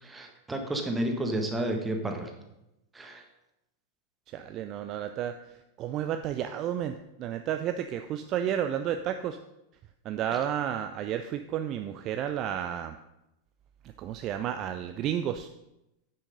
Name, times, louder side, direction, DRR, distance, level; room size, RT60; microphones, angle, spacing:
voice 1, 0.0-2.3 2.9-3.2, right 1 dB, 10° right, 3 dB, 1.5 m, -31 dB
voice 2, 4.3-5.4 5.8-9.4 10.0-13.0 14.0-15.5, right 10 dB, 35° right, 8 dB, 0.5 m, -31 dB
9.7 x 6.4 x 5.3 m, 0.90 s
figure-of-eight pair, 90°, 0 cm